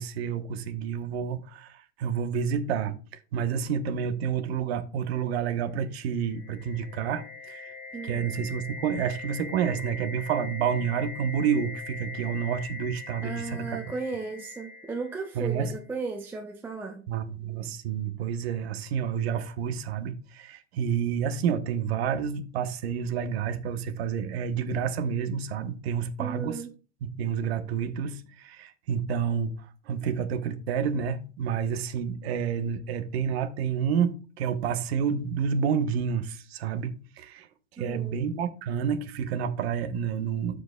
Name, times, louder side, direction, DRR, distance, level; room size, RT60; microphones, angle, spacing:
voice 1, 0.0-3.0 3.3-7.7 8.0-13.8 15.3-15.7 17.1-26.6 27.0-29.5 29.9-37.5 37.8-40.6, right 7 dB, 55° right, 1.2 m, -29 dB
sound 1, 5.9-15.8, left 3 dB, 25° left, 1.6 m, -42 dB
voice 2, 7.9-8.3 13.2-17.0 26.2-26.7 37.8-38.2, right 4 dB, 5° right, 0.4 m, -35 dB
14.0 x 5.0 x 2.3 m
hypercardioid pair, 130°, 37 cm